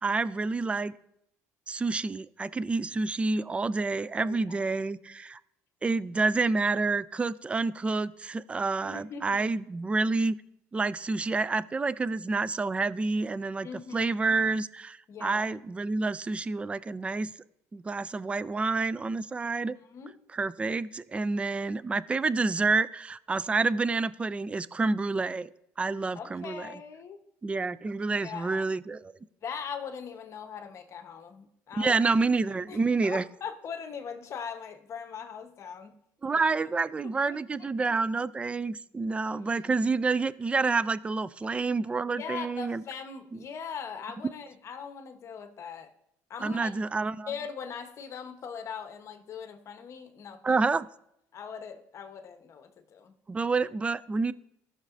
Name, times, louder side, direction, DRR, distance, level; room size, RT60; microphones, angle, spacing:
voice 1, 0.0-0.9 1.7-5.4 5.8-10.3 10.7-17.3 17.7-19.8 20.3-25.5 25.8-26.7 27.4-29.1 31.8-33.2 36.2-42.8 43.3-43.4 46.4-47.3 50.4-50.9 53.3-54.3, right 3 dB, 15° right, 17 dB, 0.3 m, -28 dB
voice 2, 4.2-4.5 8.8-9.5 13.6-14.1 15.1-15.5 19.7-20.1 26.1-27.2 28.2-28.6 29.4-32.0 32.7-32.8 33.0-35.9 36.3-36.5 37.3-37.4 37.8-37.9 39.3-39.4 42.2-45.9 46.3-46.7 47.3-50.6 51.3-53.1, left 6 dB, 45° left, 7 dB, 1.0 m, -40 dB
14.5 x 6.5 x 2.6 m, 0.78 s
cardioid pair, 105°, 7 cm